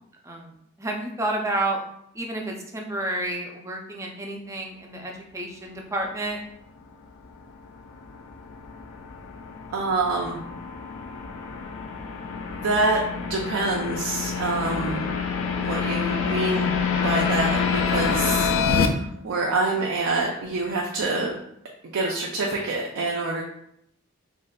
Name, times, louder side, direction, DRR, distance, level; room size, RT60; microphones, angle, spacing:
voice 1, 0.8-1.8 2.1-6.4 14.7-15.0 21.0-21.3, right 2 dB, 15° right, 1 dB, 0.4 m, -30 dB
sound 1, 7.4-18.9, left 6 dB, 65° left, 0.3 m, -27 dB
voice 2, 9.7-10.4 12.5-15.1 15.6-16.7 17.0-21.3 21.9-23.4, right 2 dB, 80° right, -2 dB, 0.4 m, -26 dB
3.5 x 2.5 x 2.2 m, 0.76 s
head